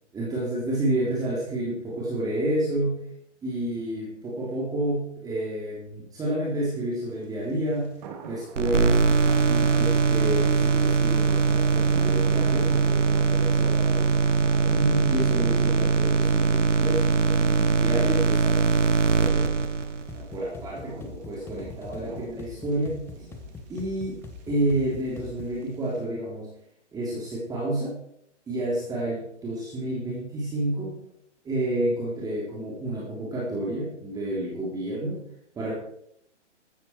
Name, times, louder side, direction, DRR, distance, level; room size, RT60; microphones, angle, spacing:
voice 1, 0.1-3.1 3.4-9.0 9.5-14.1 14.7-19.5 20.1-23.0 23.7-26.5 26.9-28.0 28.5-31.0 31.4-35.2 35.5-35.7, right 1 dB, 10° right, -5 dB, 3.5 m, -30 dB
sound 1, 7.4-7.5 7.8-26.0, right 6 dB, 35° right, 3.1 m, -43 dB
sound 2, 8.6-20.2, right 4 dB, 90° right, 1.6 m, -22 dB
sound 3, 20.1-25.6, left 4 dB, 5° left, 1.0 m, -43 dB
16.0 x 13.0 x 4.6 m, 0.70 s
hypercardioid pair, 150°, 36 cm